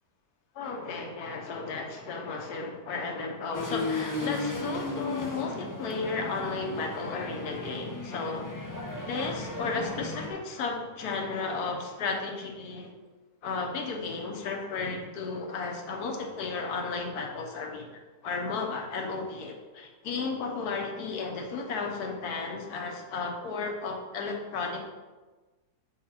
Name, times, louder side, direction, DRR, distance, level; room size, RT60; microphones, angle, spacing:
voice 1, 0.5-8.5 9.1-12.9 13.4-17.9 18.2-24.8, left 4 dB, 80° left, 2 dB, 1.4 m, -34 dB
sound 1, 3.5-10.3, left 2 dB, 25° left, 0.4 m, -35 dB
7.5 x 4.0 x 4.3 m, 1.3 s
omnidirectional pair, 1.6 m